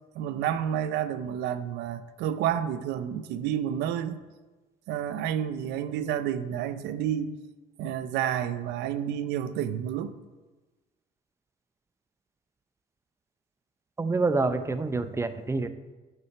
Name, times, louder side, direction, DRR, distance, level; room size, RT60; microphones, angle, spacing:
voice 1, 0.1-4.2 4.9-7.3 7.8-10.1, right 10 dB, 85° right, 12 dB, 0.6 m, -30 dB
voice 2, 14.0-15.7, right 3 dB, 15° right, 11 dB, 0.6 m, -27 dB
7.7 x 5.8 x 5.8 m, 1.2 s
cardioid pair, 110°, 17 cm